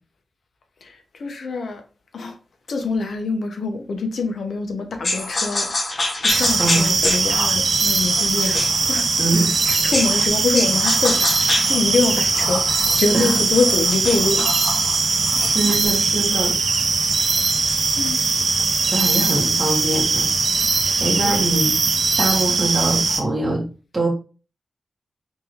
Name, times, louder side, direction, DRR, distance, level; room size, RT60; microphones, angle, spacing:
voice 1, 0.8-1.8 2.1-2.4 2.7-8.6 8.9-9.1 9.3-14.5 17.1-17.4 18.0-18.2 20.8-21.4, left 3 dB, 75° left, 1.1 m, -25 dB
sound 1, 5.0-10.3 10.5-15.9, left 2 dB, 40° left, 1.2 m, -27 dB
sound 2, 6.3-23.2, right 4 dB, 65° right, 0.8 m, -20 dB
voice 2, 9.2-9.5 13.1-13.4 15.3-16.6 18.9-20.3 20.6-21.7 22.2-23.6 23.9-24.1, right 2 dB, 30° right, 1.7 m, -23 dB
4.6 x 3.8 x 3.0 m
wide cardioid pair, 110°, 0 cm